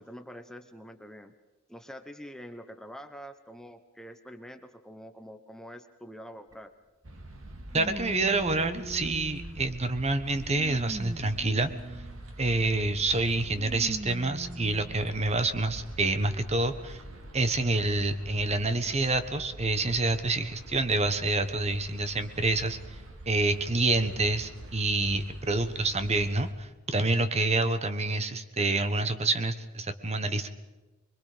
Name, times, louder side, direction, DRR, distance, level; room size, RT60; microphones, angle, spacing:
voice 1, 0.0-1.3 1.7-6.7, equal, 5° left, 7 dB, 1.0 m, -45 dB
sound 1, 6.5-6.6 7.7-9.8 10.3-12.4 13.6-15.0 15.7-15.8 16.9-17.0, right 1 dB, 15° right, 0.6 m, -41 dB
sound 2, 7.0-26.5, right 1 dB, 80° right, 2.3 m, -45 dB
voice 2, 7.7-11.7 12.4-17.0 17.3-22.8 23.3-30.5, right 2 dB, 30° right, 10 dB, 1.3 m, -27 dB
25.5 x 22.0 x 5.1 m, 1.2 s
head